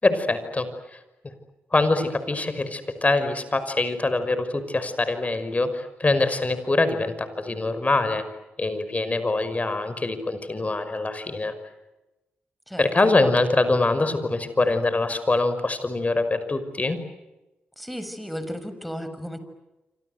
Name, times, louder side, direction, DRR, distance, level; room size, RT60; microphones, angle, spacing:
voice 1, 0.0-1.0 1.2-1.3 1.7-8.2 8.6-11.5 12.8-17.0, left 2 dB, 30° left, 11 dB, 5.7 m, -24 dB
voice 2, 12.7-13.1 17.8-19.4, equal, ahead, 10 dB, 6.8 m, -34 dB
27.0 x 26.5 x 8.2 m, 1.0 s
supercardioid pair, 50°, 4 cm